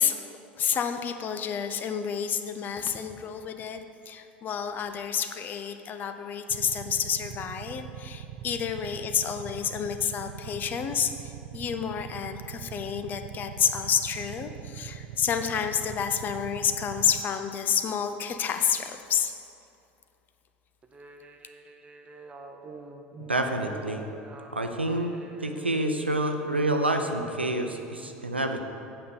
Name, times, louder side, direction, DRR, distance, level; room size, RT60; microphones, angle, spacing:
voice 1, 0.0-19.3, left 8 dB, 30° left, 8 dB, 0.6 m, -29 dB
Motorcycle / Idling, 6.5-17.2, right 11 dB, 50° right, 0.4 m, -42 dB
sound 1, 20.8-27.5, right 3 dB, 20° right, 0.8 m, -45 dB
voice 2, 23.3-24.1 24.5-25.1 25.4-28.6, right 1 dB, 85° right, 4 dB, 0.7 m, -28 dB
8.7 x 5.5 x 6.7 m, 2.8 s
figure-of-eight pair, 75°, 6 cm